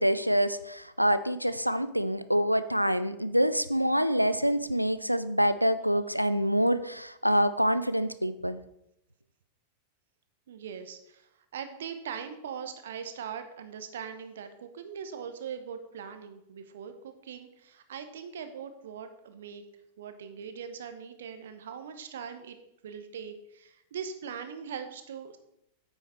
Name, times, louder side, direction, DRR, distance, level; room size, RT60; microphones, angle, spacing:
voice 1, 0.0-8.6, equal, 90° right, 13 dB, 0.4 m, -26 dB
voice 2, 10.5-19.6 20.0-22.6 22.8-25.4, right 7 dB, 60° right, 9 dB, 0.8 m, -41 dB
9.1 x 5.6 x 4.3 m, 0.81 s
figure-of-eight pair, 90°, 0 cm